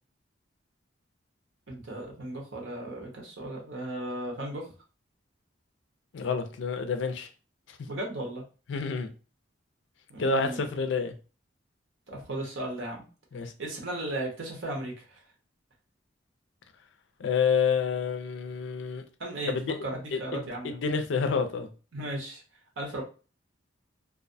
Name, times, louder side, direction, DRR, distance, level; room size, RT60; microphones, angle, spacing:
voice 1, 1.7-4.7 7.9-8.4 10.1-10.7 12.1-13.1 13.6-15.2 19.2-20.7 21.9-22.4 22.8-23.0, right 1 dB, 90° right, 0.9 m, -36 dB
voice 2, 6.1-7.3 8.7-9.1 10.2-11.1 13.3-13.5 17.2-19.0 19.5-19.8 20.1-21.7, left 5 dB, 70° left, 0.4 m, -28 dB
2.4 x 2.1 x 2.6 m
head